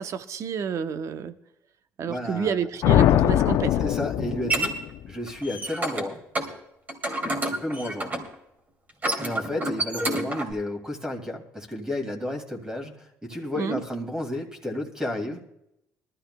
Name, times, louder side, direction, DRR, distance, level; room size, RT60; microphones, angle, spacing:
voice 1, 0.0-1.4 2.0-3.8 13.6-13.8, right 7 dB, 55° right, 10 dB, 0.8 m, -29 dB
voice 2, 2.1-2.5 3.8-4.7 5.1-6.2 7.4-8.2 9.2-15.4, left 1 dB, 10° right, 2 dB, 2.5 m, -32 dB
sound 1, 2.8-5.1, left 12 dB, 70° left, 0.5 m, -21 dB
sound 2, 3.8-4.7 5.3-6.1 6.3-6.5 6.9-8.3 8.9-10.5, right 1 dB, 30° right, 2.5 m, -29 dB
21.0 x 13.5 x 2.2 m, 0.82 s
cardioid pair, 90°, 6 cm